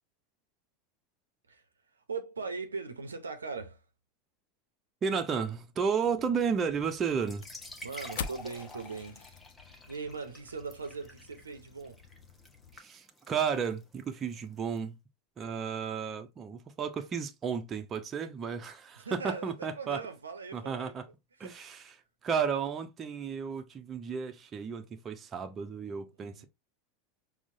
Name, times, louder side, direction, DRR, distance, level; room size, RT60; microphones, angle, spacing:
voice 1, 2.0-3.8 7.8-9.4 9.9-12.0 18.9-20.9 21.4-21.5 26.2-26.4, right 4 dB, 80° right, 0.6 m, -40 dB
voice 2, 5.0-7.4 12.7-14.9 15.4-20.0 20.5-21.1 21.4-21.9 22.2-26.4, right 6 dB, 30° right, 0.6 m, -33 dB
sound 1, 6.0-12.8, left 6 dB, 60° left, 0.4 m, -46 dB
sound 2, 7.2-14.8, left 1 dB, 10° left, 0.9 m, -50 dB
6.0 x 2.1 x 2.6 m
figure-of-eight pair, 80°, 0 cm